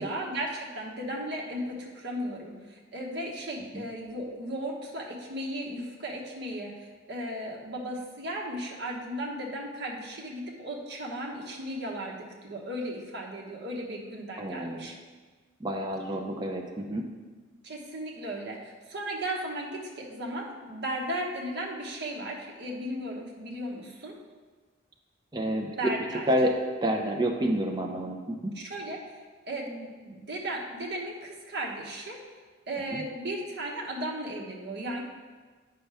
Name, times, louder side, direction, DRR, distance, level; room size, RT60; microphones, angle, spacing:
voice 1, 0.0-14.9 17.6-24.2 25.8-26.3 28.5-29.2 29.5-32.2 32.7-35.0, right 1 dB, 60° right, -1 dB, 1.2 m, -36 dB
voice 2, 14.4-14.9 15.6-17.0 25.3-25.9 26.3-26.5 26.8-28.5 32.9-33.0, right 1 dB, 25° right, 2 dB, 0.6 m, -29 dB
9.0 x 5.6 x 3.4 m, 1.4 s
head